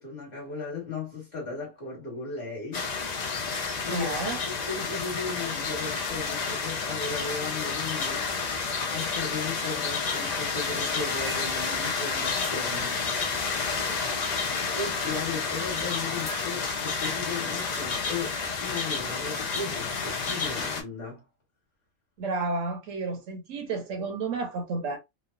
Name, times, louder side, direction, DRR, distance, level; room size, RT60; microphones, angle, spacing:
voice 1, 0.0-2.9 3.4-4.1 4.5-8.3 8.9-13.0 14.8-21.2, left 4 dB, 35° left, 1.3 m, -36 dB
sound 1, 2.7-20.8, left 4 dB, 85° left, 0.3 m, -30 dB
voice 2, 3.9-4.4 22.2-25.0, right 3 dB, 70° right, 0.9 m, -31 dB
sound 2, 13.4-17.2 17.6-18.2, left 2 dB, 55° left, 1.2 m, -47 dB
3.0 x 2.0 x 2.3 m
omnidirectional pair, 1.5 m